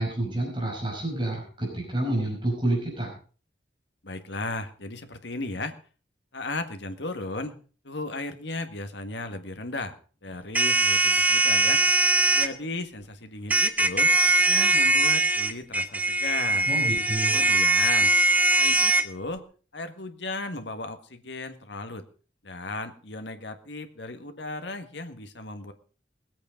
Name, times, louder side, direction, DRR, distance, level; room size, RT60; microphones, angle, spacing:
voice 1, 0.0-3.1 16.7-17.4, right 1 dB, 25° right, -2 dB, 5.4 m, -29 dB
voice 2, 4.0-5.8 6.3-7.6 7.8-11.8 12.3-14.1 14.4-16.7 17.3-18.1 18.6-19.5 19.7-22.0 22.4-25.7, left 2 dB, 75° left, 8 dB, 1.8 m, -35 dB
sound 1, 10.5-12.5 13.5-19.0, right 2 dB, 10° right, 0.8 m, -21 dB
20.0 x 8.5 x 5.2 m, 0.40 s
head